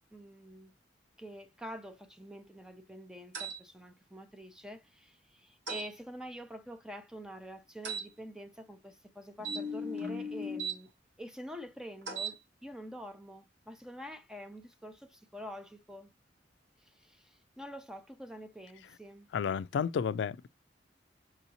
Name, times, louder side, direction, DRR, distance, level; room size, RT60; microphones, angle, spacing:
voice 1, 0.1-0.7 1.2-10.9 11.2-16.1 16.8-19.3, equal, 5° right, 0.5 m, -47 dB
sound 1, 3.3-3.6 5.7-5.9 7.8-8.1 9.4-10.8 12.0-12.4, right 1 dB, 75° right, 1.3 m, -37 dB
voice 2, 19.3-20.5, left 7 dB, 70° left, 0.3 m, -31 dB
6.3 x 2.7 x 2.7 m
head